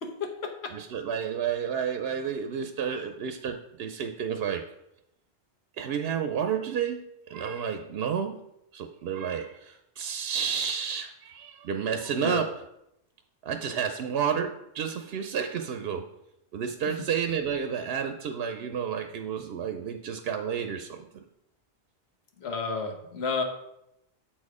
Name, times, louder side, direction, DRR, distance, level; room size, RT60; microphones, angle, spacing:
voice 1, 0.0-0.7 12.2-12.4 22.4-23.4, left 4 dB, 70° left, 3 dB, 1.3 m, -31 dB
voice 2, 0.7-4.6 5.8-7.0 7.3-8.4 8.7-12.6 13.4-16.1 16.5-21.0, right 7 dB, 65° right, 7 dB, 0.8 m, -31 dB
7.6 x 4.3 x 4.8 m, 0.82 s
omnidirectional pair, 1.1 m